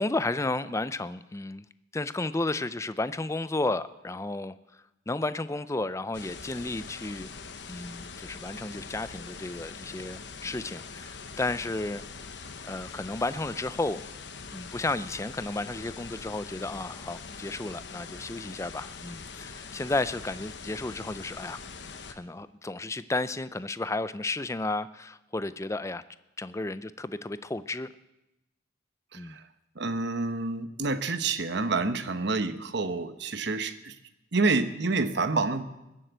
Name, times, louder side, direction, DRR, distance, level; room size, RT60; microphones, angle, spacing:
voice 1, 0.0-1.6 1.9-7.3 7.7-12.0 12.6-14.0 14.5-21.6 22.1-26.0 26.4-27.9 29.1-29.4, left 2 dB, 15° left, 14 dB, 0.4 m, -33 dB
sound 1, 6.1-22.1, left 5 dB, 60° left, 1.0 m, -43 dB
voice 2, 29.8-33.9 34.3-35.6, right 3 dB, 60° right, 10 dB, 0.9 m, -28 dB
20.5 x 7.7 x 8.0 m, 0.95 s
head